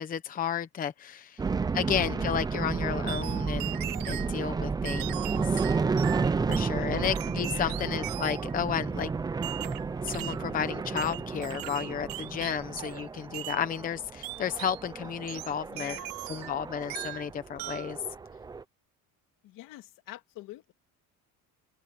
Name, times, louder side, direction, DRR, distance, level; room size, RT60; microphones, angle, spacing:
voice 1, 0.0-1.4 1.7-3.8 4.1-5.6 6.5-9.1 10.0-16.0 16.3-18.0, left 8 dB, 25° left, 0.8 m, -32 dB
sound 1, 1.4-18.6, right 4 dB, 10° right, 0.5 m, -32 dB
voice 2, 1.9-2.3 6.5-7.1 7.5-7.9 15.7-16.4 19.4-20.7, left 16 dB, 65° left, 2.5 m, -46 dB
sound 2, 3.1-4.3 4.8-6.7 7.1-8.5 9.4-10.5 11.0-13.1 13.3-13.6 14.2-14.8 15.3-16.6 16.9-17.3 17.6-17.9, right 16 dB, 70° right, 2.0 m, -39 dB
open air
cardioid pair, 175°, 35 cm